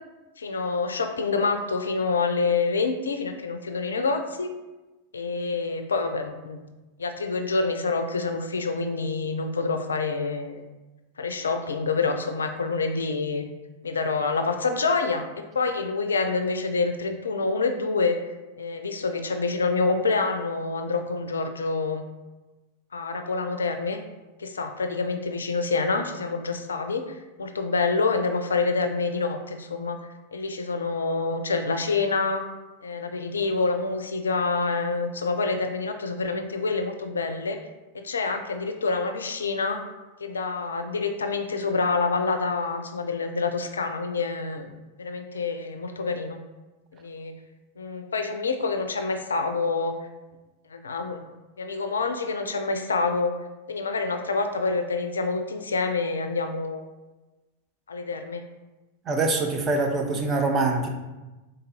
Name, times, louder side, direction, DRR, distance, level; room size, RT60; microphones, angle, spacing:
voice 1, 0.4-4.5 5.1-6.7 7.0-10.6 11.2-13.5 13.8-15.2 15.5-22.0 22.9-24.0 24.4-30.0 30.3-32.4 32.8-37.6 38.0-39.8 40.2-44.7 45.0-46.4 46.9-47.3 47.8-49.9 50.7-51.2 51.6-53.3 53.7-56.8 57.9-58.4, left 4 dB, 70° left, 7 dB, 0.3 m, -27 dB
voice 2, 59.1-60.9, right 3 dB, 25° right, 3 dB, 0.6 m, -24 dB
3.8 x 3.8 x 2.7 m, 1.1 s
figure-of-eight pair, 90°, 0 cm